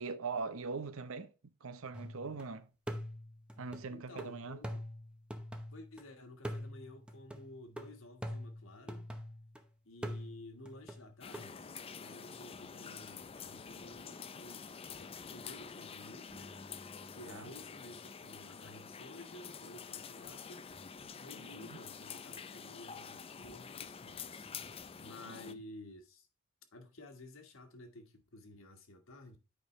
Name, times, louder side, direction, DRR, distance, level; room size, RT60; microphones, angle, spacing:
voice 1, 0.0-1.3 1.6-2.7 3.6-4.6 17.3-17.5 21.4-21.8 25.3-25.6, right 4 dB, 70° right, 0.7 m, -42 dB
sound 1, 1.9-2.4 2.9-6.0 6.4-9.6 10.0-11.5, equal, 5° right, 0.8 m, -44 dB
voice 2, 3.9-4.8 5.7-9.1 9.8-14.7 15.0-16.6 17.1-20.7 21.2-24.5 25.0-26.3 26.7-29.4, left 1 dB, 65° left, 1.5 m, -53 dB
sound 2, 11.2-25.5, left 6 dB, 25° left, 0.4 m, -48 dB
sound 3, 16.3-22.2 23.4-23.6 24.1-25.1, equal, 35° right, 1.8 m, -62 dB
8.9 x 5.2 x 3.1 m
head